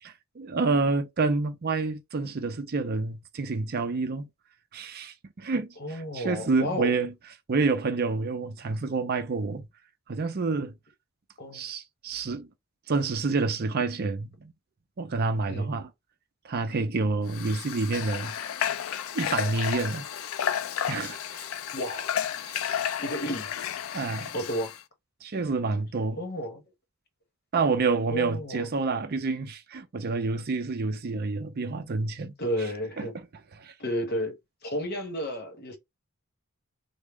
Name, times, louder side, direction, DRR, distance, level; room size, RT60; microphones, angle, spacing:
voice 1, 0.0-4.3 4.7-7.1 7.5-9.7 10.1-10.7 11.5-12.5 12.9-14.5 15.0-15.9 16.4-18.7 19.1-20.1 20.9-21.5 22.4-22.6 23.9-24.3 25.2-26.2 27.5-32.7 33.0-33.1 33.5-33.7, right 3 dB, 45° right, 0.5 m, -28 dB
voice 2, 5.8-6.9 11.4-11.7 15.5-15.7 21.7-22.1 23.0-23.5 24.3-24.7 26.2-26.6 28.1-28.7 32.4-33.1 33.8-35.8, equal, 45° left, 1.0 m, -32 dB
Water / Water tap faucet, 17.3-24.8, left 9 dB, 65° left, 0.3 m, -32 dB
3.5 x 2.1 x 3.5 m
head